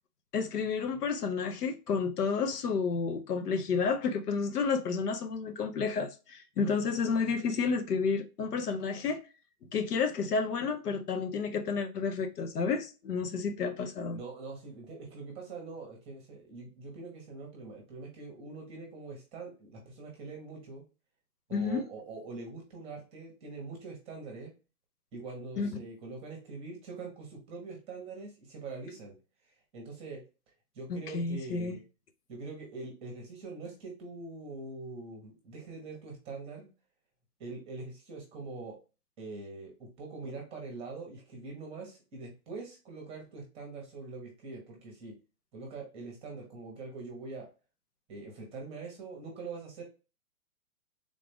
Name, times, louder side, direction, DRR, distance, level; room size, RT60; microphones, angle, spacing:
voice 1, 0.3-9.2 9.7-14.2 21.5-21.8 25.6-25.8 30.9-31.8, left 5 dB, 85° left, 0.9 m, -31 dB
voice 2, 14.1-20.8 21.5-24.5 25.1-29.1 29.7-30.2 30.7-31.8 32.3-36.7 37.4-38.8 39.2-45.1 45.5-47.5 48.1-49.8, right 3 dB, 15° right, 0.9 m, -43 dB
3.8 x 2.5 x 3.4 m
hypercardioid pair, 150°, 45 cm